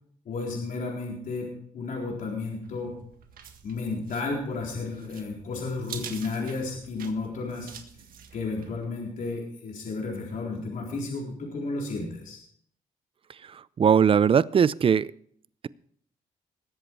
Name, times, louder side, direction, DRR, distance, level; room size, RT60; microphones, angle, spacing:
voice 1, 0.3-1.5 1.7-2.9 3.6-7.7 8.3-12.4, left 3 dB, 65° left, -2 dB, 3.9 m, -32 dB
sound 1, 2.6-8.8, right 7 dB, 75° right, 1.7 m, -46 dB
voice 2, 13.4-15.1, right 7 dB, 40° right, 20 dB, 0.5 m, -21 dB
20.0 x 8.1 x 4.6 m, 0.64 s
cardioid pair, 85°, 15 cm